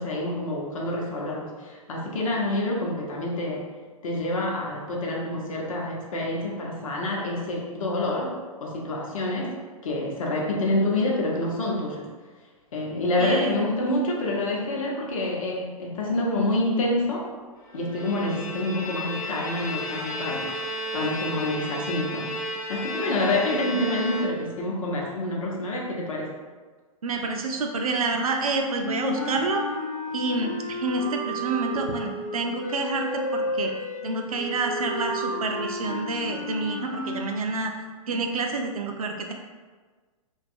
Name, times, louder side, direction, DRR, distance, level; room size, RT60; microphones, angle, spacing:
voice 1, 0.0-3.6 4.0-9.5 9.8-12.0 12.7-17.3 17.7-20.5 20.9-26.3, left 1 dB, 65° left, -2 dB, 0.7 m, -27 dB
voice 2, 13.2-13.5 27.0-29.7 30.1-33.7 34.0-37.7 38.1-39.3, right 3 dB, 75° right, 3 dB, 0.4 m, -28 dB
Bowed string instrument, 17.7-24.7, equal, 20° left, 0.5 m, -33 dB
sound 1, 28.5-37.2, left 1 dB, 85° left, 1.0 m, -32 dB
2.6 x 2.2 x 2.6 m, 1.4 s
figure-of-eight pair, 115°, 19 cm